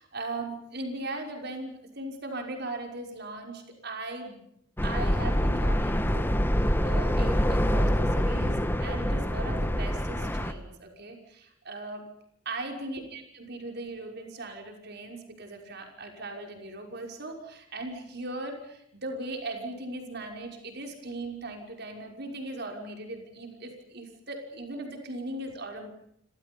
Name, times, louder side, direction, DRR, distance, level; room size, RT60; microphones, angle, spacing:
voice 1, 0.0-4.4 4.8-12.1 12.5-25.9, right 2 dB, 55° right, 3 dB, 5.8 m, -38 dB
sound 1, 4.8-10.5, equal, 10° left, 1.7 m, -25 dB
29.0 x 27.0 x 5.5 m, 0.72 s
head